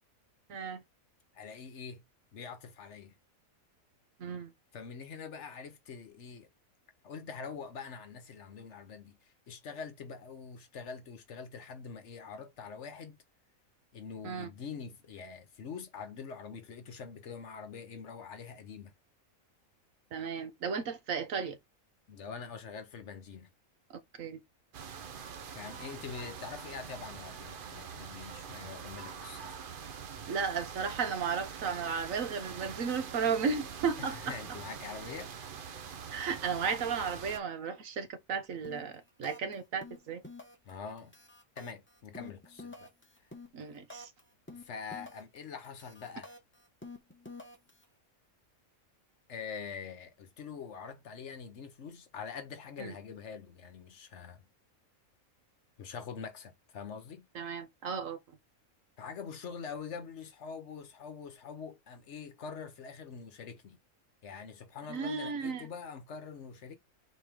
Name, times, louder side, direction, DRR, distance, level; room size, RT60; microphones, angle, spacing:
voice 1, 0.5-0.8 4.2-4.5 14.2-14.5 20.1-21.6 24.2-24.4 30.3-34.3 36.1-40.2 43.5-44.1 52.8-52.9 57.3-58.2 64.9-65.7, right 6 dB, 70° right, 1.4 m, -34 dB
voice 2, 1.3-2.0 2.3-3.2 4.7-6.5 7.0-13.2 13.9-18.9 22.1-23.5 25.5-29.6 34.0-35.3 40.6-41.1 41.6-42.9 44.5-46.3 49.3-54.4 55.8-57.3 59.0-63.8 64.2-66.7, left 6 dB, 60° left, 1.1 m, -44 dB
sound 1, 24.7-37.4, right 6 dB, 50° right, 0.7 m, -44 dB
sound 2, 38.6-38.9 39.2-39.5 39.8-40.7 41.0-44.2 44.5-45.4 45.6-47.8, left 2 dB, 10° left, 0.8 m, -48 dB
4.2 x 3.2 x 3.5 m
omnidirectional pair, 1.5 m